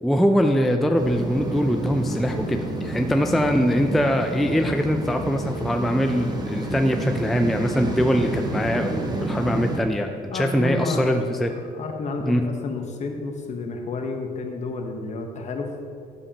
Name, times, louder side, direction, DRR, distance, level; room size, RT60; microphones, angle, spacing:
voice 1, 0.0-11.5 12.3-12.5, equal, ahead, 5 dB, 0.3 m, -22 dB
sound 1, 1.0-9.8, right 2 dB, 25° right, 0.9 m, -29 dB
voice 2, 10.3-11.0 11.5-15.7, left 3 dB, 45° left, 4 dB, 1.0 m, -30 dB
9.7 x 7.1 x 2.8 m, 2.6 s
cardioid pair, 110°, 17 cm